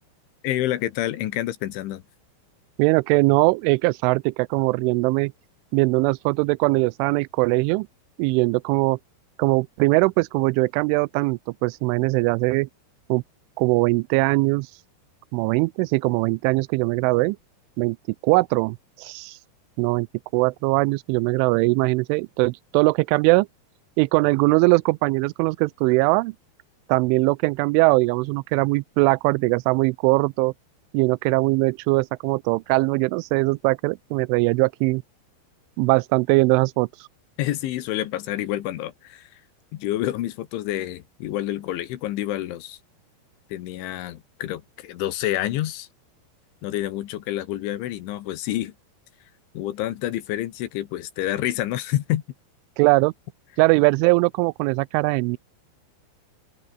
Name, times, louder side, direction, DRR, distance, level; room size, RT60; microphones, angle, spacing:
voice 1, 0.4-2.0 37.4-39.4 39.7-42.8 43.5-45.9 46.6-48.7 49.6-52.2, left 14 dB, 80° left, 3.8 m, -28 dB
voice 2, 2.8-5.3 5.7-7.9 8.2-9.0 9.4-12.7 13.1-13.2 13.6-14.7 15.3-17.4 17.8-18.0 18.2-19.4 19.8-20.1 20.3-23.5 24.0-26.3 26.9-30.5 30.9-35.0 35.8-36.9 52.8-53.1 53.6-55.4, right 25 dB, 90° right, 3.0 m, -21 dB
open air
omnidirectional pair, 5.4 m